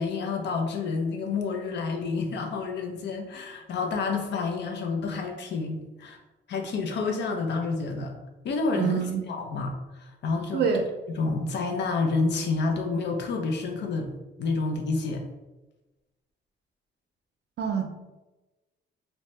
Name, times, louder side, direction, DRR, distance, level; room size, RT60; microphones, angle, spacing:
voice 1, 0.0-6.2 6.5-8.1 8.4-9.0 9.3-10.6 11.2-14.1 14.4-15.2, left 4 dB, 65° left, 3 dB, 0.5 m, -29 dB
voice 2, 8.8-9.2 10.5-10.8 17.6-17.9, right 7 dB, 60° right, 4 dB, 0.5 m, -25 dB
2.7 x 2.1 x 3.2 m, 1.1 s
cardioid pair, 145°, 20 cm